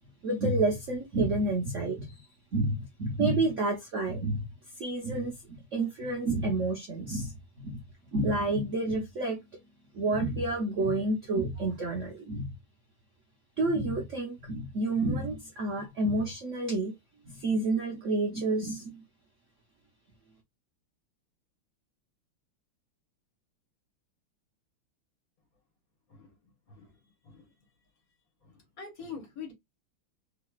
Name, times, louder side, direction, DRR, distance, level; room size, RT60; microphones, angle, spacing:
voice 1, 0.2-2.2 2.5-4.4 4.8-7.8 8.1-9.4 9.9-12.5 13.6-16.9 17.3-18.9, right 2 dB, 60° right, 0.8 m, -29 dB
voice 2, 26.7-27.0 27.2-27.4 28.4-29.5, left 6 dB, 50° left, 1.4 m, -44 dB
3.8 x 2.9 x 2.2 m
omnidirectional pair, 2.2 m